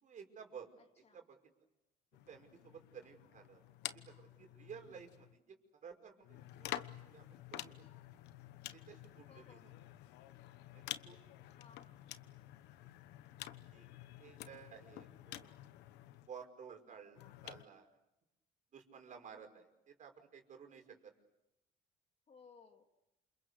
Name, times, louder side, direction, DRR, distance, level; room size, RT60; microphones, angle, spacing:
voice 1, 0.0-0.7 1.1-1.4 2.3-3.6 3.9-7.7 8.7-9.6 10.7-11.2 13.7-13.9 14.2-15.5 16.3-17.9 18.7-21.1, right 7 dB, 50° right, 5.5 m, -54 dB
voice 2, 0.8-1.2 9.3-9.8 11.6-12.2 22.3-22.8, left 5 dB, 40° left, 2.9 m, -62 dB
sound 1, 2.1-5.4 6.2-16.3 17.1-17.6, left 14 dB, 90° left, 1.1 m, -50 dB
29.0 x 27.0 x 6.7 m
cardioid pair, 110°, 17 cm